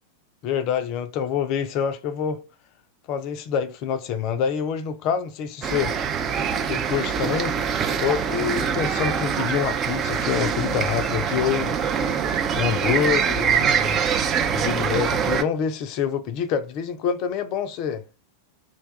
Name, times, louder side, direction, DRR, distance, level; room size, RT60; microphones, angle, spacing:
voice 1, 0.4-2.4 3.1-6.0 6.7-7.5 8.0-11.8 12.6-14.0 14.5-18.0, left 8 dB, 40° left, 0.4 m, -26 dB
sound 1, 5.6-15.4, right 7 dB, 30° right, 0.4 m, -24 dB
2.6 x 2.2 x 3.9 m
figure-of-eight pair, 90°, 0 cm